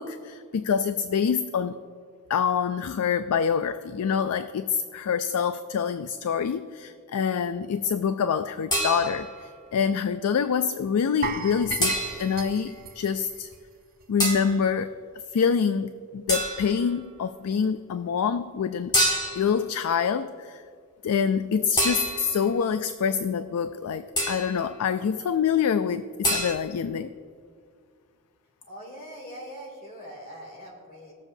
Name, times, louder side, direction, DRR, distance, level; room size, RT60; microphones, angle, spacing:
voice 1, 0.0-1.8 2.3-9.3 9.7-13.5 14.1-14.9 15.3-19.0 19.4-20.6 21.0-27.1, left 6 dB, 80° left, 11 dB, 0.4 m, -26 dB
sound 1, 8.7-9.4 11.8-12.4 14.2-14.6 16.3-16.8 18.9-19.6 21.8-22.5 24.2-24.6 26.2-26.5, equal, 20° left, 1.3 m, -26 dB
sound 2, 11.2-14.2 14.5-14.7 15.2-15.3, right 5 dB, 40° right, 0.8 m, -36 dB
voice 2, 28.7-31.1, equal, 40° left, -2 dB, 2.7 m, -42 dB
20.0 x 7.1 x 2.6 m, 2.1 s
head